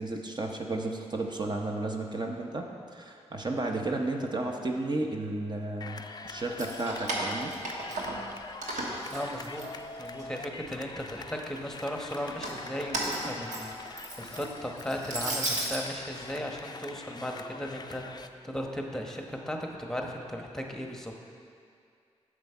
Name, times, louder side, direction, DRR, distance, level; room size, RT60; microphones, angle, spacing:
voice 1, 0.0-2.7 2.9-7.5, right 2 dB, 35° right, 2 dB, 0.8 m, -33 dB
sound 1, 5.8-18.3, left 4 dB, 35° left, 0.4 m, -44 dB
Keys jangling, 6.4-8.3 8.6-10.2 10.6-11.4 12.2-15.8, right 2 dB, 80° right, 1.2 m, -35 dB
voice 2, 9.1-9.6 10.0-21.1, equal, 5° left, 1 dB, 1.0 m, -36 dB
7.8 x 6.1 x 4.4 m, 2.3 s
cardioid pair, 50°, 12 cm